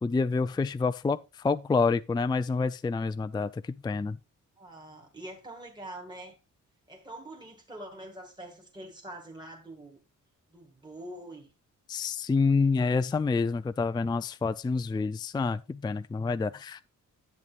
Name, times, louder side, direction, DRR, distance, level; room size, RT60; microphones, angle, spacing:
voice 1, 0.0-4.2 11.9-16.8, left 4 dB, 15° left, 0.3 m, -28 dB
voice 2, 4.6-6.4 6.9-10.0 10.5-11.5, right 1 dB, 15° right, 2.2 m, -44 dB
10.5 x 8.2 x 2.4 m
cardioid pair, 100°, 32 cm